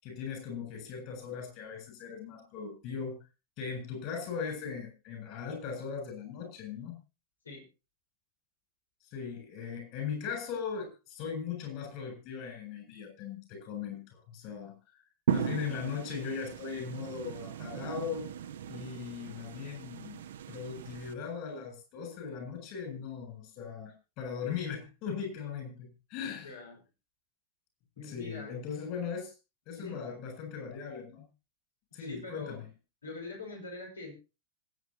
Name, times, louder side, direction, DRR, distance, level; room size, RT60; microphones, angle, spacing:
voice 1, 0.0-3.2 3.6-7.0 9.1-14.7 15.3-18.3 18.7-20.2 20.5-26.5 28.0-29.3 29.7-31.2 31.9-32.7, left 6 dB, 45° left, 6 dB, 7.9 m, -39 dB
sound 1, 15.3-21.1, right 9 dB, 60° right, 1.1 m, -37 dB
voice 2, 26.4-26.8 28.0-28.6 29.8-30.0 32.0-32.6 33.0-34.1, left 3 dB, 75° left, 1 dB, 5.2 m, -43 dB
25.5 x 9.2 x 3.0 m, 0.30 s
figure-of-eight pair, 90°, 0 cm